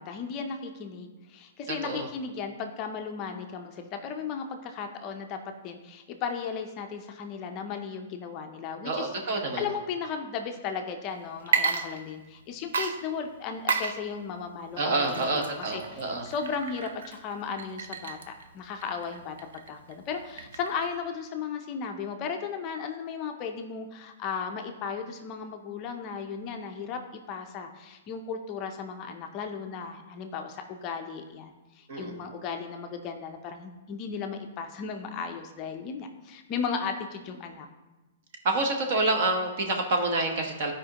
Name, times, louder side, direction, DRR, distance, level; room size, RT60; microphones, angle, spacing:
voice 1, 0.0-5.4 5.6-19.4 19.7-27.0 27.3-37.7, left 6 dB, 20° left, 5 dB, 0.5 m, -35 dB
voice 2, 1.7-2.1 8.8-9.7 14.8-16.3 31.9-32.2 38.4-40.7, right 2 dB, 35° right, 3 dB, 1.1 m, -28 dB
Water / Liquid, 11.4-12.4 12.7-21.0, right 6 dB, 75° right, 0.7 m, -33 dB
13.0 x 5.0 x 2.9 m, 1.1 s
hypercardioid pair, 175°, 0 cm